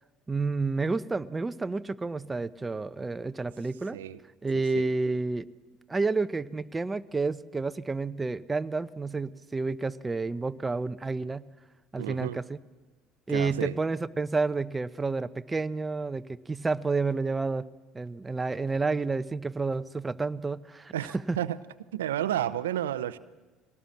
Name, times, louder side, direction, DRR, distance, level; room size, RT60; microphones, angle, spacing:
voice 1, 0.3-4.0 4.4-5.5 5.9-11.4 11.9-12.4 13.3-17.7 17.9-20.9 21.3-21.4, right 3 dB, 20° right, 0.8 m, -30 dB
voice 2, 4.5-4.9 12.0-12.4 13.3-13.8 20.9-21.6 21.9-23.2, right 12 dB, 80° right, 0.7 m, -31 dB
22.0 x 18.0 x 7.4 m
hypercardioid pair, 65°, 0 cm